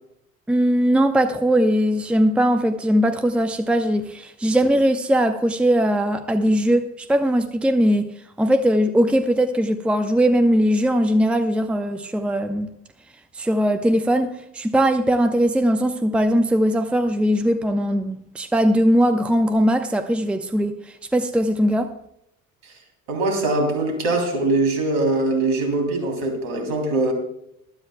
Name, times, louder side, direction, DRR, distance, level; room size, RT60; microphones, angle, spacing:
voice 1, 0.5-8.1 8.4-12.7 13.3-21.9, equal, 5° right, 0.8 m, -20 dB
voice 2, 23.1-27.1, right 2 dB, 65° right, 3.2 m, -22 dB
20.0 x 12.0 x 2.2 m
figure-of-eight pair, 55°, 45 cm